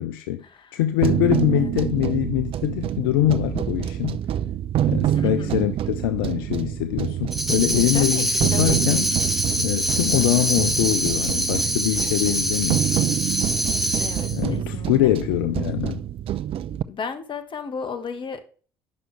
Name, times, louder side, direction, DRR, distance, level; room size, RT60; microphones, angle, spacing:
voice 1, 0.0-0.4 0.7-4.2 4.8-9.1 9.6-12.9 14.3-16.0, left 14 dB, 75° left, 0.4 m, -23 dB
sound 1, 1.0-16.8, right 11 dB, 50° right, 0.4 m, -27 dB
voice 2, 5.1-5.6 7.9-9.0 10.1-10.5 13.9-14.9 16.9-18.4, left 6 dB, 45° left, 1.3 m, -34 dB
Tambourine, 7.3-14.4, right 1 dB, ahead, 1.3 m, -24 dB
9.5 x 6.1 x 3.2 m
hypercardioid pair, 55°, 12 cm